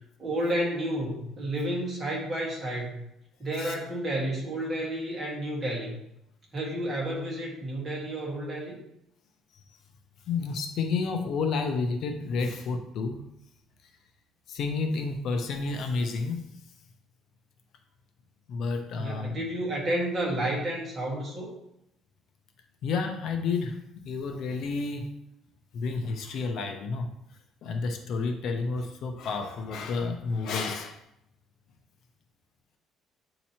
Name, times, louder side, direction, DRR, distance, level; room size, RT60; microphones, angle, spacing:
voice 1, 0.2-3.0 3.4-6.0 6.5-8.8 18.9-21.5, right 1 dB, 25° right, -3 dB, 1.6 m, -31 dB
voice 2, 10.3-13.2 14.5-16.4 18.5-19.5 22.8-25.2 25.7-27.1 27.6-31.0, left 4 dB, 50° left, 5 dB, 0.6 m, -30 dB
8.5 x 2.9 x 4.3 m, 0.82 s
cardioid pair, 175°, 0 cm